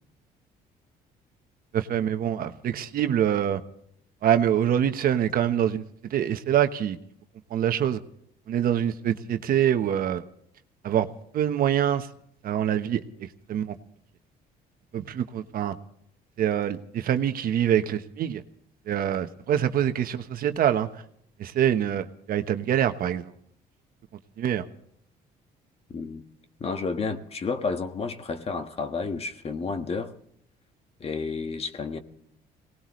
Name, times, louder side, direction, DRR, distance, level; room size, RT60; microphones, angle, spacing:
voice 1, 1.7-3.6 4.2-5.8 6.1-7.0 7.5-8.0 8.5-10.2 10.8-11.1 11.3-12.1 12.4-13.0 13.5-13.7 14.9-15.7 16.4-18.4 18.9-20.9 21.4-23.3 24.4-24.7, right 10 dB, 60° right, 1.2 m, -25 dB
voice 2, 25.9-26.2 26.6-30.1 31.0-32.0, left 4 dB, 35° left, 1.6 m, -31 dB
24.0 x 19.0 x 3.2 m
cardioid pair, 110°, 17 cm